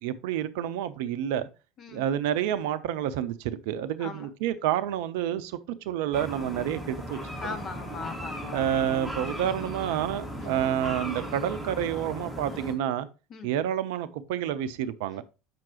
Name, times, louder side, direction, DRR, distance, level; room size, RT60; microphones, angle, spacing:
voice 1, 0.0-1.5 1.9-7.6 8.5-13.1 13.4-15.2, right 10 dB, 60° right, 0.5 m, -29 dB
sound 1, 6.1-12.7, equal, 10° left, 2.3 m, -37 dB
voice 2, 7.4-9.0 10.4-10.6 13.3-13.5, left 5 dB, 40° left, 1.0 m, -40 dB
7.5 x 5.9 x 3.0 m
figure-of-eight pair, 70°, 0 cm